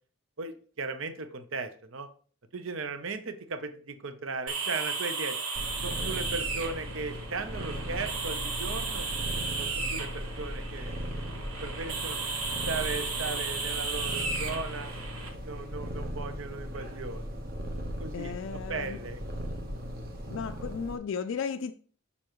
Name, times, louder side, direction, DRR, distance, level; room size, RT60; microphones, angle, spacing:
voice 1, 0.4-2.1 2.5-5.4 5.8-9.1 9.6-10.9 11.4-12.2 12.7-14.9 15.3-17.4 18.0-19.2, right 4 dB, 70° right, 0.7 m, -37 dB
sound 1, 4.5-15.3, right 4 dB, 90° right, 1.3 m, -35 dB
Purr, 5.5-21.0, equal, 45° right, 1.1 m, -38 dB
voice 2, 18.1-19.0 20.3-21.7, left 6 dB, 65° left, 0.3 m, -35 dB
6.9 x 5.4 x 3.0 m
head